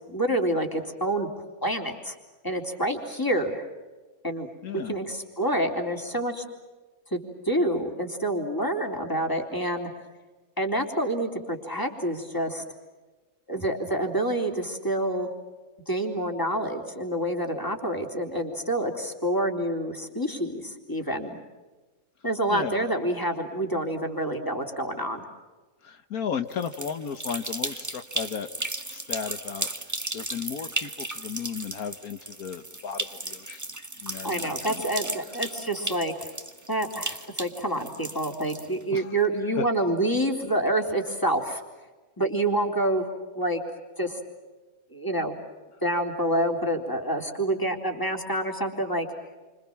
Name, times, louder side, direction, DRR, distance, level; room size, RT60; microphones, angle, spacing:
voice 1, 0.1-1.3 1.6-2.2 2.4-3.6 4.2-4.5 4.7-6.4 7.1-9.9 10.6-12.6 13.5-15.3 15.9-21.4 22.2-25.3 34.2-36.1 36.7-41.6 42.2-43.1 43.3-43.6 44.0-44.2 44.9-45.4 45.8-49.1, right 1 dB, 15° left, 3 dB, 3.7 m, -27 dB
voice 2, 4.6-5.0 22.5-22.9 25.8-28.5 28.9-33.6 34.0-35.0 38.9-39.1 39.5-39.6, left 7 dB, 80° left, 9 dB, 1.7 m, -35 dB
sound 1, 26.5-39.0, right 2 dB, 15° right, 1.2 m, -35 dB
29.0 x 26.5 x 7.4 m, 1.3 s
omnidirectional pair, 1.5 m